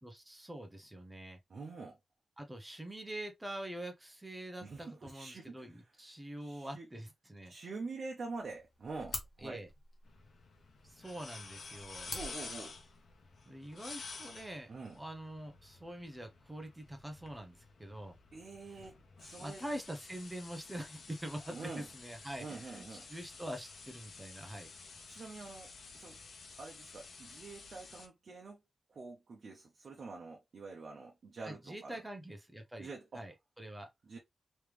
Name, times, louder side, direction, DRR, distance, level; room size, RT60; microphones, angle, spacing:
voice 1, 0.0-1.4 2.4-7.5 9.4-9.7 10.8-12.1 13.5-18.2 19.4-24.7 31.4-32.9 33.1-33.9, right 1 dB, 10° right, 0.7 m, -45 dB
voice 2, 1.5-2.0 4.6-5.8 6.4-6.9 7.5-9.6 12.1-12.7 14.7-15.0 18.3-19.6 21.5-21.9 22.4-23.1 25.1-26.2 26.6-28.6 28.9-32.0 32.8-33.2 34.1-34.2, right 3 dB, 60° right, 0.8 m, -46 dB
sound 1, 8.3-13.3, left 2 dB, 45° left, 1.1 m, -49 dB
sound 2, 10.0-28.1, left 4 dB, 75° left, 0.9 m, -51 dB
3.2 x 3.1 x 3.3 m
wide cardioid pair, 175°, 0 cm